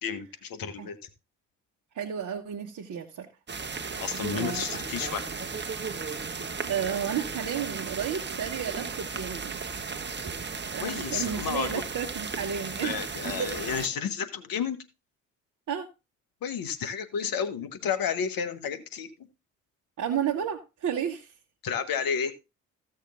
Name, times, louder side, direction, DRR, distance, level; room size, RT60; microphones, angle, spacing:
voice 1, 0.0-1.0 3.9-5.3 10.8-11.8 12.8-14.8 16.4-19.1 21.6-22.3, left 7 dB, 55° left, 1.7 m, -31 dB
voice 2, 1.9-3.3 4.3-4.6 6.3-9.6 9.9-10.1 10.7-13.0 13.4-13.5 15.7-15.9 20.0-21.3, right 8 dB, 50° right, 1.3 m, -32 dB
sound 1, 3.5-13.9, right 5 dB, 25° right, 1.2 m, -35 dB
15.5 x 6.7 x 2.6 m
hypercardioid pair, 45°, 40 cm